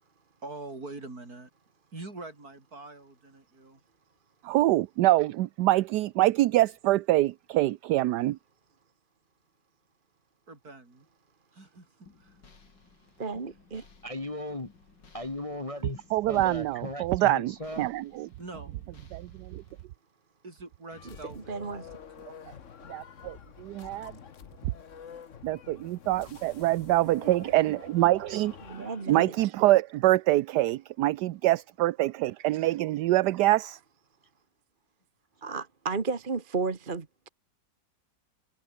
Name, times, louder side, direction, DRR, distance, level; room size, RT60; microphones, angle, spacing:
voice 1, 0.4-1.5 1.9-3.8 10.5-11.1 11.5-11.9 12.2-12.4 18.4-18.8 20.4-21.9 22.2-22.3, right 2 dB, 50° right, 5.6 m, -44 dB
voice 2, 4.4-8.4 16.1-18.3 19.1-19.6 22.9-24.1 25.4-33.8, right 16 dB, 70° right, 1.1 m, -25 dB
sound 1, 12.1-19.9, left 4 dB, 70° left, 3.7 m, -57 dB
voice 3, 13.2-13.8 21.0-21.9 28.6-29.3 35.4-37.3, right 4 dB, 30° right, 1.4 m, -33 dB
voice 4, 14.0-14.7 15.1-17.8, left 1 dB, 20° left, 1.4 m, -37 dB
sound 2, 20.9-29.2, left 7 dB, 45° left, 1.4 m, -48 dB
omnidirectional pair, 2.0 m